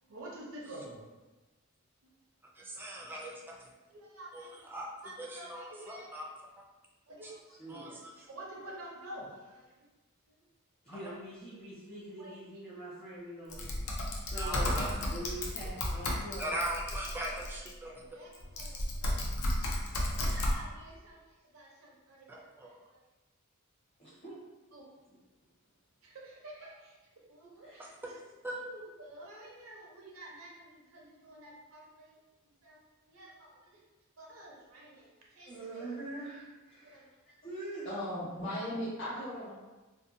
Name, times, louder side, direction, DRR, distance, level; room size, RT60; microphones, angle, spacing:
voice 1, 0.1-1.0 3.9-4.7 5.0-6.1 7.1-7.3 7.7-8.0 8.3-9.6 12.2-12.4 14.5-15.0 18.1-19.2 20.1-21.2 21.5-22.7 24.7-24.8 26.0-26.9 27.3-28.2 28.5-32.2 32.6-32.8 33.1-33.8 34.2-35.8 36.8-37.1, right 1 dB, 75° right, -3 dB, 0.6 m, -49 dB
voice 2, 2.6-3.7 4.3-4.9 5.2-6.3 7.2-7.3 7.7-8.3 10.9-11.0 14.4-15.0 16.4-18.2 22.3-22.8 28.4-28.6, right 1 dB, 10° right, -2 dB, 0.3 m, -40 dB
voice 3, 7.5-8.3 10.8-13.7 14.3-14.8 15.1-16.7 18.6-18.7 24.0-24.4 27.6-27.9 35.5-37.1 37.4-37.9, right 2 dB, 30° left, -9 dB, 0.6 m, -44 dB
Typing, 13.5-17.7 18.3-20.6, left 1 dB, 90° left, 0.5 m, -33 dB
voice 4, 37.8-39.5, equal, 55° left, -10 dB, 0.9 m, -37 dB
2.6 x 2.1 x 2.5 m, 1.2 s
head